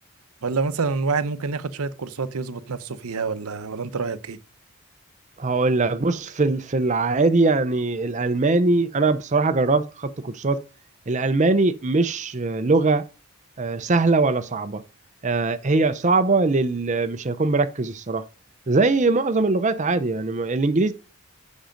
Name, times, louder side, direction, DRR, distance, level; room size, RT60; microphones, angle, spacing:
voice 1, 0.4-4.4, right 4 dB, 80° right, 0.7 m, -27 dB
voice 2, 5.4-10.6 11.1-13.0 13.6-14.8 15.2-18.2 18.7-20.9, right 3 dB, 35° right, 0.6 m, -21 dB
7.7 x 6.3 x 5.1 m
head